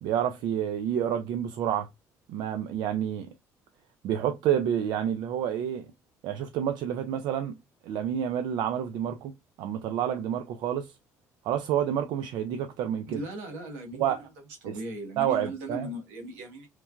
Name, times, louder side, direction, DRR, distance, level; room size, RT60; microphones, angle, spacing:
voice 1, 0.0-1.9 2.3-3.3 4.0-5.9 6.2-7.5 7.8-9.3 9.6-10.9 11.4-13.2 14.0-14.2 14.7-14.8 15.2-15.9, right 9 dB, 70° right, 0.3 m, -29 dB
voice 2, 13.1-14.2 14.6-16.7, right 2 dB, 90° right, 1.0 m, -37 dB
3.1 x 2.2 x 2.3 m
supercardioid pair, 65°, 7 cm